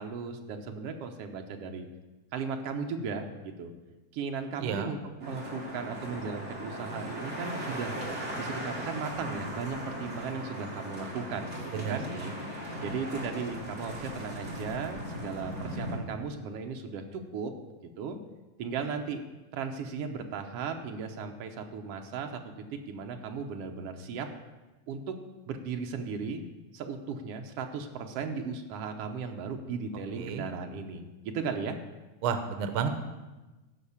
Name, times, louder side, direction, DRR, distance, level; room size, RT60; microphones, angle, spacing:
voice 1, 0.0-1.9 2.3-3.7 4.1-8.0 8.4-12.1 12.8-17.5 18.0-18.2 18.6-19.2 19.5-24.3 24.9-25.1 25.5-26.5 26.7-31.8, right 5 dB, 70° right, 4 dB, 1.6 m, -36 dB
voice 2, 4.6-4.9 11.7-12.3 30.2-30.4 32.2-32.9, right 7 dB, 90° right, 8 dB, 1.1 m, -31 dB
sound 1, 5.2-16.0, equal, 30° right, 1.6 m, -38 dB
15.0 x 5.4 x 7.1 m, 1.1 s
omnidirectional pair, 3.5 m